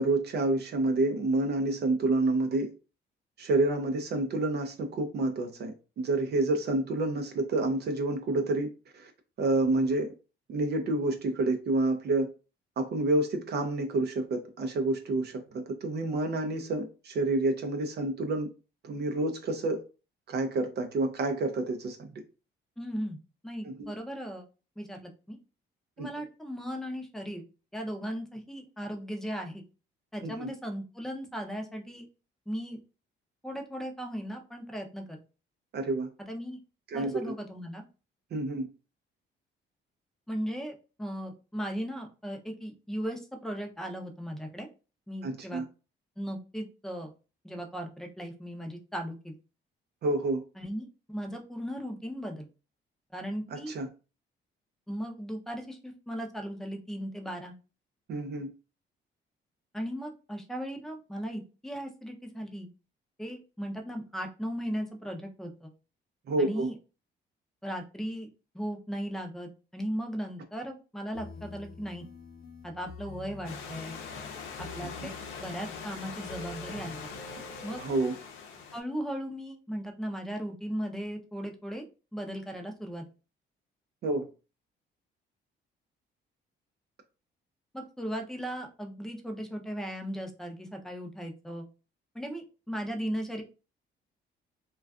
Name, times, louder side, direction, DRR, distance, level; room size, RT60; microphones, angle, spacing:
voice 1, 0.0-2.7 3.4-8.7 8.9-9.1 9.4-10.1 10.5-12.3 12.8-18.5 18.8-19.8 20.3-22.1 23.6-23.9 26.0-26.1 30.2-30.5 35.7-36.1 36.9-37.3 38.3-38.7 45.2-45.6 50.0-50.4 53.5-53.9 58.1-58.5 66.3-66.7 77.8-78.2 84.0-84.3, right 2 dB, 55° right, 0.5 m, -28 dB
voice 2, 22.8-23.2 23.4-24.4 24.8-25.4 26.0-27.4 27.7-29.6 30.1-32.1 32.5-32.8 33.4-35.2 36.2-36.6 36.9-37.8 40.3-44.7 45.1-45.6 46.2-47.1 47.4-49.3 50.6-52.5 53.1-53.7 54.9-57.5 59.7-62.7 63.2-65.7 66.4-66.7 67.6-68.3 68.5-72.1 72.6-74.0 74.6-75.1 75.4-77.1 77.6-77.8 78.7-81.8 82.1-83.0 87.7-91.7 92.1-93.4, equal, ahead, 0.5 m, -37 dB
sound 1, 71.1-78.0, left 2 dB, 50° left, 0.7 m, -47 dB
Stream / Liquid, 73.4-78.8, left 6 dB, 85° left, 0.6 m, -42 dB
2.4 x 2.2 x 2.3 m
cardioid pair, 90°, 20 cm